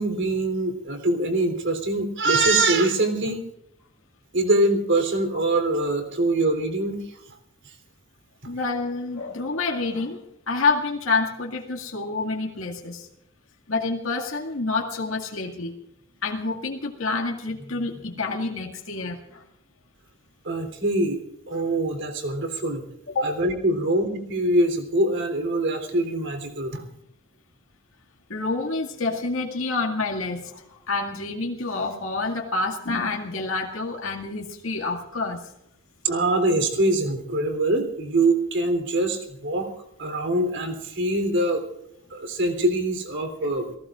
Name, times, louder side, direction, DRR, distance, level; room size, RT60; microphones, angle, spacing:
voice 1, 0.0-3.5 4.3-7.2 7.7-7.8 20.5-21.2 21.5-22.8 23.2-26.8 36.0-39.7 40.0-41.6 42.1-43.7, right 2 dB, 60° right, 6 dB, 3.5 m, -23 dB
voice 2, 8.5-13.1 13.7-15.8 16.2-19.4 23.1-23.4 28.3-35.4, left 3 dB, 90° left, 0 dB, 2.1 m, -28 dB
29.5 x 18.5 x 2.5 m, 0.80 s
head